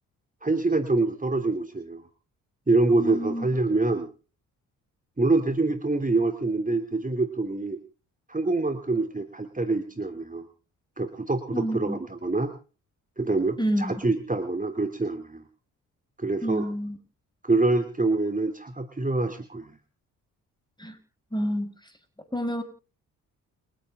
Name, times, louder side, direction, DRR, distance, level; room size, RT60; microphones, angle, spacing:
voice 1, 0.4-2.0 2.7-4.1 5.2-7.8 8.3-10.5 11.0-12.5 13.2-15.4 16.2-16.6 17.4-19.8, right 3 dB, 20° right, 8 dB, 3.1 m, -25 dB
voice 2, 3.0-3.5 11.5-12.0 13.6-13.9 16.4-17.0 20.8-21.0 21.3-21.9 22.3-22.6, equal, 10° left, 9 dB, 6.4 m, -29 dB
30.0 x 10.0 x 3.8 m, 0.38 s
hypercardioid pair, 45°, 42 cm